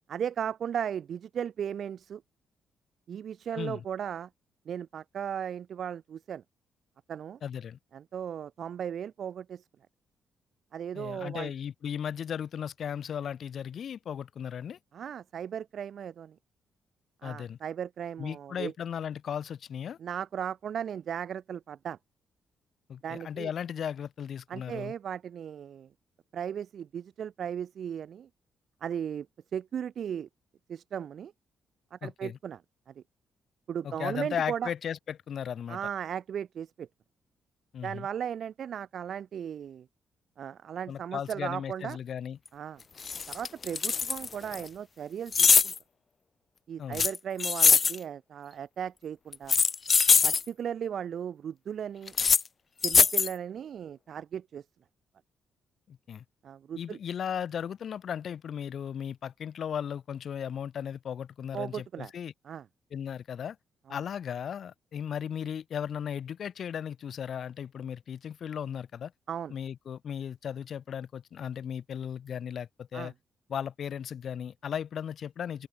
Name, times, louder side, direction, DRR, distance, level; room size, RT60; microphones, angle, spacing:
voice 1, 0.1-2.2 3.1-4.3 4.7-6.4 7.1-7.4 7.9-9.6 10.7-11.5 14.9-16.4 17.2-18.7 20.0-22.0 23.0-23.5 24.5-25.9 26.3-28.3 28.8-29.3 29.5-30.3 30.7-31.3 31.9-32.6 32.9-33.0 33.7-34.7 35.7-36.9 37.8-39.9 40.4-42.0 42.5-42.8 43.3-45.7 46.7-49.5 50.2-52.1 52.8-54.6 56.4-57.0 61.5-62.1 62.4-62.7 63.9-64.0 69.3-69.5 72.9-73.1, right 8 dB, 60° right, 0.7 m, -36 dB
voice 2, 7.4-7.8 10.9-14.8 17.2-17.6 18.2-20.0 22.9-24.9 32.0-32.4 33.8-35.8 37.7-38.1 40.9-42.4 46.8-47.1 55.9-56.2 56.8-62.3 62.9-63.6 63.9-69.1 69.5-73.1 73.5-75.7, left 8 dB, 60° left, 0.8 m, -36 dB
sound 1, 42.5-42.6 43.0-44.6 45.3-45.8 46.9-48.0 49.3-50.4 52.1-52.4 52.8-53.3, left 5 dB, 40° left, 0.4 m, -22 dB
open air
cardioid pair, 105°, 0 cm